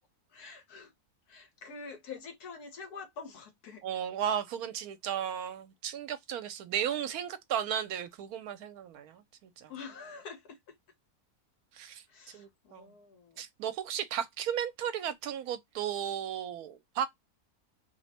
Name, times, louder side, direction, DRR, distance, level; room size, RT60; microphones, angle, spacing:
voice 1, 0.3-0.9 1.3-3.8 9.7-10.6 12.1-13.4, left 5 dB, 80° left, 1.5 m, -46 dB
voice 2, 3.8-9.7 11.7-12.0 12.3-12.9 13.4-17.1, right 9 dB, 80° right, 1.1 m, -35 dB
3.1 x 2.1 x 4.1 m
omnidirectional pair, 1.6 m